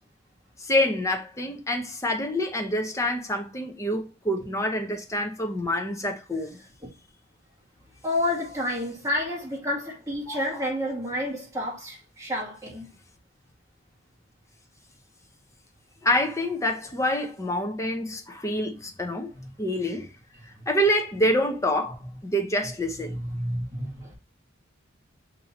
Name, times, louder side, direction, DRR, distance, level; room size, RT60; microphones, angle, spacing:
voice 1, 0.6-6.6 10.3-10.6 16.0-19.3 19.6-20.1 20.7-23.2, left 1 dB, 15° left, 0.7 m, -27 dB
voice 2, 8.0-12.8 19.4-19.5 23.1-24.1, left 1 dB, 15° right, 1.9 m, -30 dB
6.4 x 2.7 x 2.9 m
head